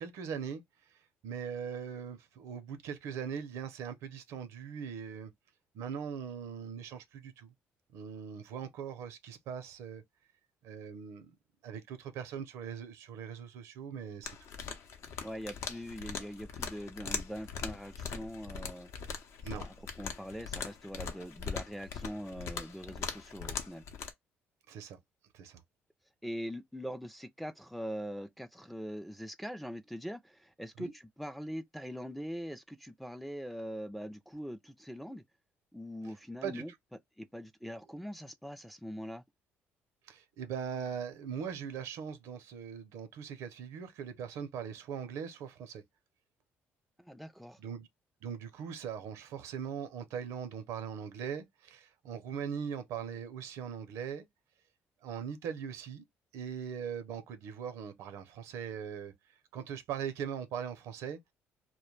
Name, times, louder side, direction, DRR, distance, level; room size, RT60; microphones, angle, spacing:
voice 1, 0.0-5.3 5.7-7.5 7.9-10.0 10.6-11.4 11.6-14.4 19.4-19.7 24.7-25.0 25.3-25.6 30.8-30.9 36.4-36.6 40.0-45.8 47.6-47.9 48.2-54.3 55.0-56.0 56.3-59.1 59.5-61.3, right 7 dB, 80° right, 0.5 m, -40 dB
sound 1, 14.2-24.1, left 6 dB, 65° left, 0.6 m, -41 dB
voice 2, 15.2-18.9 19.5-23.8 26.2-35.2 35.7-36.7 37.2-39.2 47.0-47.6, equal, ahead, 0.3 m, -42 dB
2.2 x 2.1 x 3.0 m
cardioid pair, 90°, 5 cm